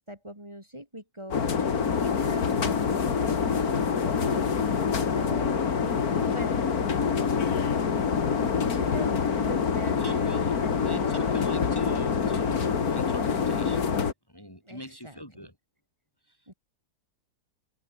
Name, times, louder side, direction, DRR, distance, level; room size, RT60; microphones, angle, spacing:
voice 1, 0.0-4.6 5.1-7.2 8.5-11.5 14.6-15.5 16.5-16.6, equal, 15° right, 7.1 m, -42 dB
sound 1, 1.3-14.1, left 6 dB, 65° left, 2.3 m, -26 dB
voice 2, 9.8-10.6 10.8-14.0 14.3-15.5 16.3-16.5, equal, 15° left, 6.1 m, -42 dB
omnidirectional pair, 1.7 m